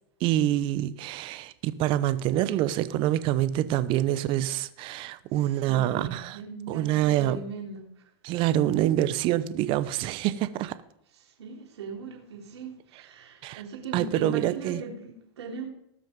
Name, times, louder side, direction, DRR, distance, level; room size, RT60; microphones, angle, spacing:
voice 1, 0.2-6.4 6.7-7.4 8.2-10.8 13.4-13.6 13.9-14.8, right 13 dB, 40° right, 0.9 m, -26 dB
voice 2, 5.4-7.8 11.2-15.7, right 4 dB, 90° right, 3.5 m, -39 dB
18.5 x 6.3 x 5.3 m
supercardioid pair, 140°, 14 cm